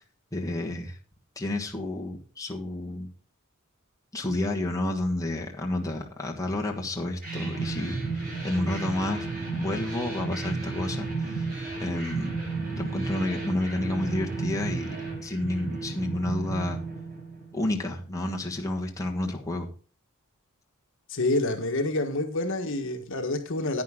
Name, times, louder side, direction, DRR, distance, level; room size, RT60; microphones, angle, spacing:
voice 1, 0.3-1.0 1.3-3.1 4.1-8.0 8.4-9.3 9.5-11.5 11.8-12.4 12.7-14.9 15.2-16.8 17.5-19.7, left 1 dB, 15° left, 1.4 m, -30 dB
sound 1, 7.2-17.8, right 4 dB, 40° right, 6.7 m, -33 dB
voice 2, 21.1-23.8, left 2 dB, 60° left, 1.5 m, -27 dB
10.5 x 9.5 x 3.7 m
head